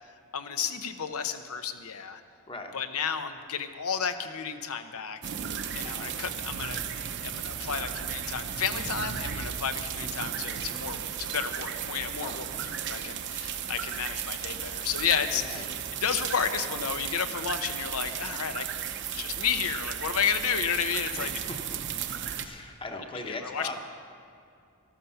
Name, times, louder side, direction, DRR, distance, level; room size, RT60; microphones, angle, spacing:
voice 1, 0.3-2.2 2.7-5.2 5.8-6.8 7.2-12.5 12.9-15.6 15.9-18.6 19.1-21.3 23.3-23.8, left 7 dB, 80° left, 9 dB, 0.8 m, -32 dB
sound 1, 5.2-22.4, right 8 dB, 55° right, 0.7 m, -35 dB
voice 2, 5.8-6.2 12.2-12.7 15.3-15.6 21.2-21.8 22.4-23.8, left 2 dB, 25° left, 4 dB, 1.1 m, -40 dB
13.5 x 12.5 x 5.7 m, 2.4 s
head